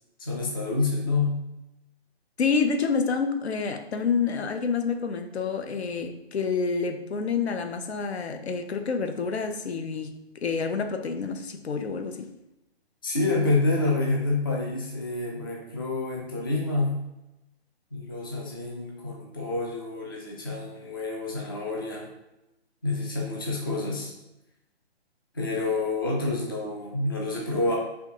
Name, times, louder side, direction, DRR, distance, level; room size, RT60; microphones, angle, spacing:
voice 1, 0.2-1.4 13.0-17.0 17.9-22.1 22.8-24.1 25.3-27.8, left 2 dB, 20° left, -2 dB, 0.4 m, -28 dB
voice 2, 2.4-10.1 10.4-12.3, left 5 dB, 75° left, 7 dB, 0.6 m, -28 dB
4.4 x 2.6 x 2.8 m, 0.92 s
hypercardioid pair, 150°, 32 cm